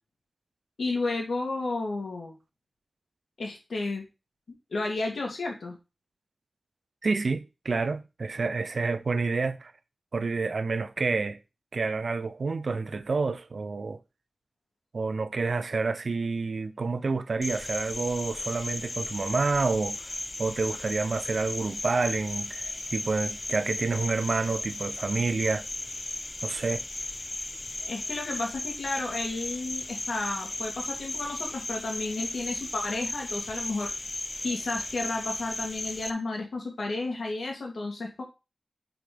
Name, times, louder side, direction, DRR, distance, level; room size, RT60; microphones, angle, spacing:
voice 1, 0.8-2.4 3.4-4.0 4.7-5.8 27.9-34.2 34.4-38.2, left 3 dB, 90° left, 2.5 m, -32 dB
voice 2, 7.0-9.7 10.1-11.4 11.7-14.0 14.9-20.1 20.4-25.6 26.4-26.8, right 4 dB, 70° right, 0.6 m, -28 dB
Cricket, 17.4-36.1, left 2 dB, 35° left, 0.7 m, -36 dB
5.8 x 4.9 x 5.1 m
wide cardioid pair, 90°, 0 cm